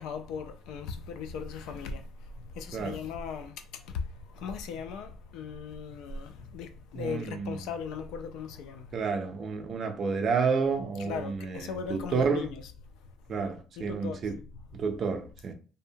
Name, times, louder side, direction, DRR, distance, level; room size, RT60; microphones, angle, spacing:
voice 1, 0.0-2.0 2.6-3.8 4.3-8.9 11.0-12.6 13.8-14.5, left 6 dB, 75° left, 0.3 m, -38 dB
voice 2, 6.9-7.6 8.9-12.5 13.3-14.4 14.7-15.5, right 5 dB, 35° right, 0.4 m, -30 dB
2.7 x 2.1 x 2.7 m
cardioid pair, 175°, 0 cm